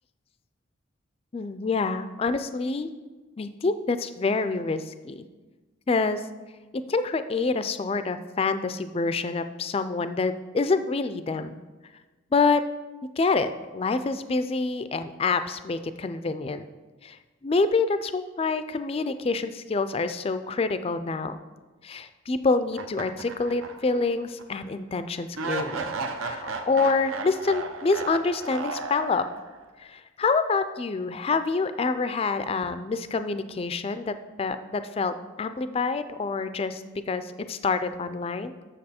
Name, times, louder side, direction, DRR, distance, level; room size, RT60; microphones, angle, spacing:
voice 1, 1.3-2.9 3.4-5.3 5.9-6.3 6.7-11.6 12.3-12.7 13.0-16.6 17.0-17.2 17.4-21.4 21.8-25.9 26.2-29.3 29.8-38.5, left 4 dB, 30° left, 11 dB, 0.3 m, -27 dB
sound 1, 22.7-24.0 24.4-24.5 25.3-29.6, right 4 dB, 85° right, 0.7 m, -34 dB
7.6 x 6.6 x 4.3 m, 1.2 s
head